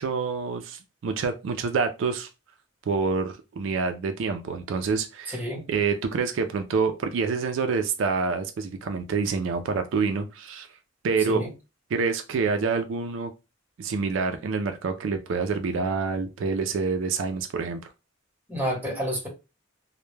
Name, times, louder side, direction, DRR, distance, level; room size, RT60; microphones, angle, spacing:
voice 1, 0.0-2.3 2.9-5.4 5.7-10.7 11.0-11.4 11.9-13.3 13.8-17.8, right 5 dB, 75° right, 0.4 m, -27 dB
voice 2, 5.3-5.6 11.3-11.5 18.5-19.3, equal, 10° right, 0.9 m, -29 dB
2.1 x 2.1 x 3.1 m
head